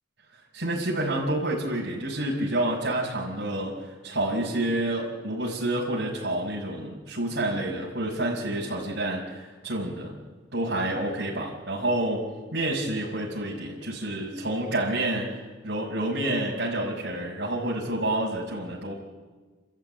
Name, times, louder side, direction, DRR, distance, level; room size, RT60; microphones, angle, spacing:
voice 1, 0.5-3.8 4.0-10.1 10.5-15.3 15.6-18.9, right 1 dB, 65° right, -7 dB, 5.0 m, -28 dB
29.5 x 13.5 x 8.9 m, 1.4 s
head